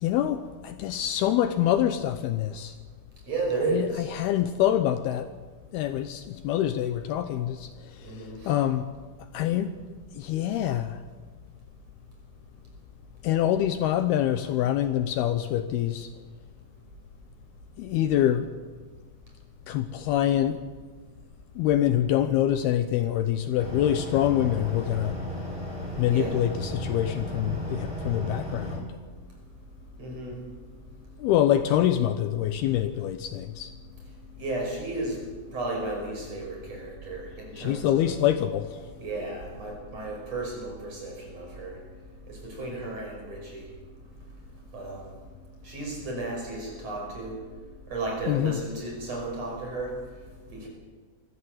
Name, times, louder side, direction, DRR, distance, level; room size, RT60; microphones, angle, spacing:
voice 1, 0.0-2.7 3.7-3.9 4.1-5.3 5.7-7.7 8.0-8.1 8.5-8.8 9.3-9.7 10.2-11.0 13.2-16.1 17.8-18.5 19.7-20.6 21.6-25.1 26.0-28.9 31.2-33.7 37.6-38.8 48.3-48.6, left 11 dB, 75° left, 9 dB, 2.6 m, -25 dB
voice 2, 3.3-4.1 8.0-8.5 26.1-26.4 30.0-30.4 34.4-35.2 35.5-38.1 39.0-41.8 42.3-43.7 44.7-45.1 45.6-47.4 47.9-49.9 50.5-50.7, right 3 dB, 35° right, 0 dB, 6.2 m, -33 dB
sound 1, 23.6-28.8, equal, 5° right, 6.4 m, -35 dB
23.5 x 14.5 x 7.9 m, 1.4 s
omnidirectional pair, 4.9 m